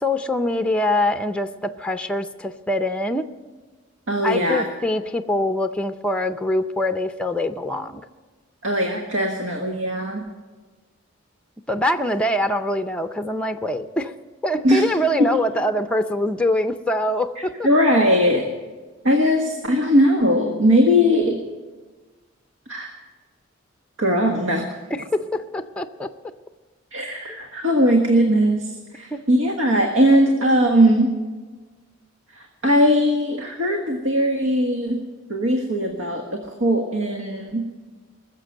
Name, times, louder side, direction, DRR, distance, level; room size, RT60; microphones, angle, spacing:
voice 1, 0.0-3.3 4.2-8.0 11.7-14.1 14.4-17.7 24.9-26.1 27.3-27.4 29.1-29.2, left 1 dB, 5° left, 8 dB, 0.5 m, -24 dB
voice 2, 4.1-4.6 8.6-10.2 14.6-14.8 15.2-15.3 17.6-18.5 19.0-21.4 22.7-22.9 24.0-24.6 26.9-31.1 32.3-35.0 35.3-37.7, equal, 80° right, 3 dB, 1.6 m, -19 dB
20.5 x 7.4 x 9.0 m, 1.3 s
head